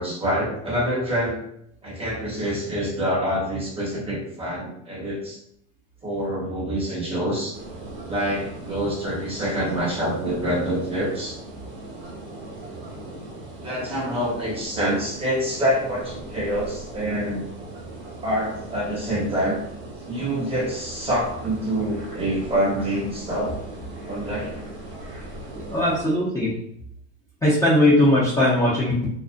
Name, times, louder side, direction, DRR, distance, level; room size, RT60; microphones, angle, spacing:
voice 1, 0.0-1.4 1.8-5.4 6.0-7.5 8.0-11.4 13.6-17.4 18.2-19.6 20.1-23.6 24.0-24.6, equal, 15° right, -4 dB, 0.8 m, -26 dB
sound 1, 7.5-26.0, right 2 dB, 50° right, 1.0 m, -39 dB
voice 2, 25.7-26.5 27.4-29.1, left 1 dB, 10° left, -10 dB, 0.5 m, -19 dB
2.5 x 2.0 x 2.4 m, 0.72 s
supercardioid pair, 120°, 35 cm